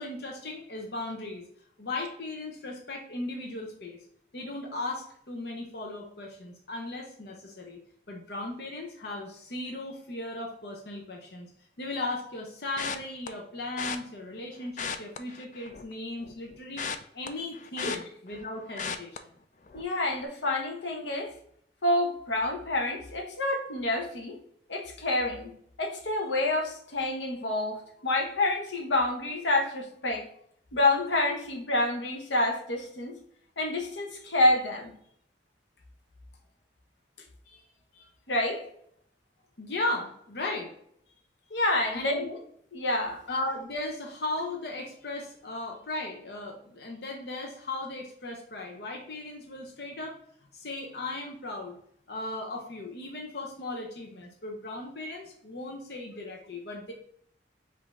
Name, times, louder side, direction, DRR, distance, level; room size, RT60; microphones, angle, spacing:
voice 1, 0.0-1.4 1.8-4.0 4.3-7.8 8.1-11.5 11.8-16.8 17.1-19.2 34.2-34.3 37.5-37.7 37.9-38.1 39.6-40.7 41.1-41.2 41.9-42.4 43.3-50.1 50.5-51.8 52.1-56.9, left 2 dB, 60° left, 0 dB, 0.8 m, -37 dB
sound 1, 12.8-13.3 13.8-14.0 14.7-15.9 16.2-18.4 18.8-19.2 19.7-19.9 20.2-20.3, left 6 dB, 40° left, 0.4 m, -36 dB
voice 2, 19.7-21.3 21.8-24.4 24.7-25.5 25.8-30.3 30.7-33.2 33.6-34.9 38.3-38.6 41.5-42.2 42.7-43.2, left 2 dB, 85° left, 1 dB, 0.9 m, -28 dB
5.2 x 2.7 x 3.5 m, 0.67 s
head